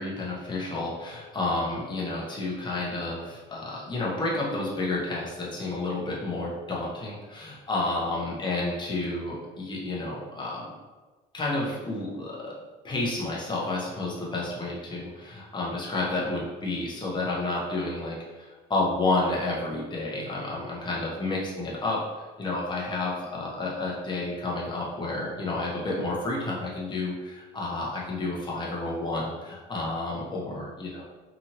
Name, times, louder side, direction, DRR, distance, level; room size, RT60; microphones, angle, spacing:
voice 1, 0.0-10.7 11.3-12.5 12.8-31.0, left 2 dB, 25° left, -5 dB, 0.9 m, -30 dB
2.9 x 2.5 x 2.9 m, 1.3 s
cardioid pair, 95°, 20 cm